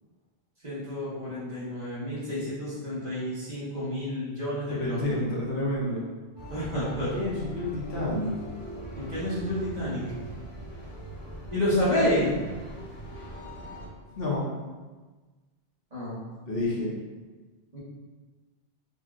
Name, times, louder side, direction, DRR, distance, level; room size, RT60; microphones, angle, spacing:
voice 1, 0.6-5.2 6.5-7.1 8.9-10.0 11.5-12.3 15.9-16.2 17.7-17.8, left 1 dB, 40° right, -9 dB, 1.0 m, -29 dB
voice 2, 4.8-6.0 7.1-8.3 14.2-14.4 16.5-16.9, left 2 dB, 60° left, -5 dB, 0.9 m, -29 dB
sound 1, 6.4-13.9, equal, 25° left, 0.8 m, -41 dB
3.8 x 2.2 x 2.4 m, 1.3 s
omnidirectional pair, 1.1 m